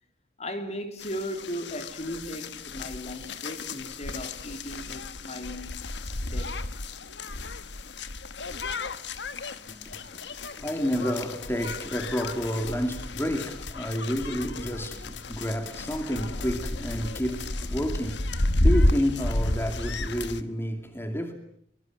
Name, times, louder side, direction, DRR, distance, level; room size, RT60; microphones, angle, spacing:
voice 1, 0.4-5.9 6.2-6.7, equal, 35° left, 3.2 m, -37 dB
sound 1, 1.0-20.4, left 1 dB, 65° left, 1.4 m, -31 dB
voice 2, 9.5-21.3, equal, 15° left, 2.5 m, -30 dB
sound 2, 9.7-17.5, left 7 dB, 85° left, 2.0 m, -42 dB
24.5 x 24.0 x 9.2 m
head